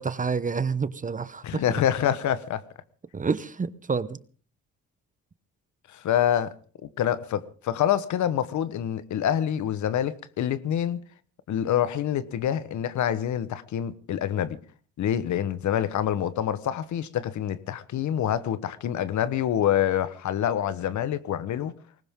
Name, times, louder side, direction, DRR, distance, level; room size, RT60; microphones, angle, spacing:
voice 1, 0.0-1.6 3.1-4.2, right 5 dB, 25° right, 0.9 m, -28 dB
voice 2, 1.4-2.6 5.9-6.5 7.0-11.0 11.5-14.6 15.0-21.7, left 10 dB, 70° left, 1.2 m, -26 dB
20.0 x 18.5 x 3.7 m
cardioid pair, 90°, 30 cm